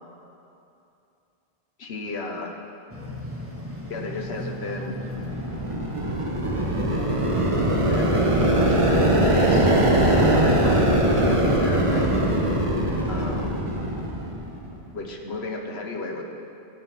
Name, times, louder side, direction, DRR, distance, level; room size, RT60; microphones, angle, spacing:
voice 1, 1.8-2.5 3.9-4.9 7.9-12.2 13.1-13.5 14.9-16.2, left 2 dB, 85° left, 2 dB, 1.4 m, -33 dB
sound 1, 2.9-11.3, equal, 15° right, 1.6 m, -38 dB
sound 2, 4.9-14.7, right 1 dB, 30° right, 1.2 m, -21 dB
16.0 x 7.7 x 6.0 m, 2.7 s
omnidirectional pair, 1.1 m